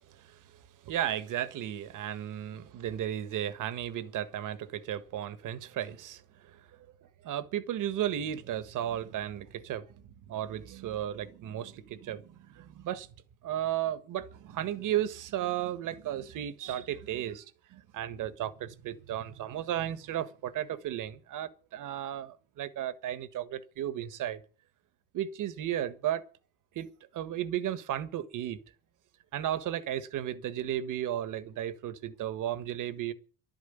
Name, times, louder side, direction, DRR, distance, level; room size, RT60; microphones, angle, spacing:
voice 1, 0.1-6.7 7.2-13.1 13.4-24.4 25.1-26.2 26.7-28.6 29.3-33.1, right 11 dB, 70° right, 1.5 m, -34 dB
12.0 x 9.5 x 9.3 m
cardioid pair, 140°, 33 cm